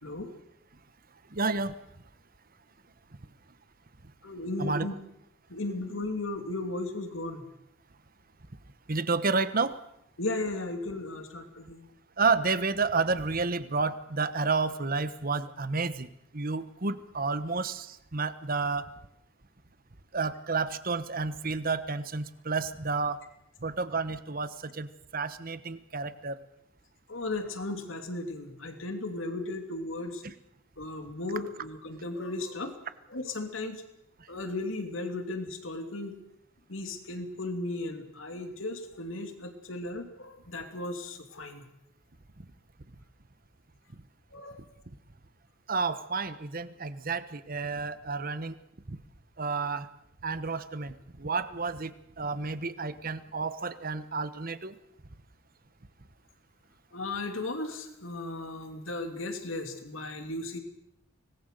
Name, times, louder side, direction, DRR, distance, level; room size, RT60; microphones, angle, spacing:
voice 1, 1.3-1.7 4.6-4.9 8.9-9.7 12.2-16.1 16.3-18.9 20.1-23.2 23.6-24.9 25.1-26.4 45.7-48.6 49.4-49.9 50.2-51.9 52.2-54.7, right 4 dB, 45° right, 13 dB, 1.2 m, -30 dB
voice 2, 4.2-4.9 5.5-7.5 10.2-11.9 27.1-30.2 30.8-32.7 33.1-33.8 34.3-36.2 36.7-41.7 44.3-44.6 56.9-60.6, left 2 dB, 80° left, 6 dB, 2.8 m, -36 dB
25.0 x 19.5 x 6.7 m, 0.79 s
head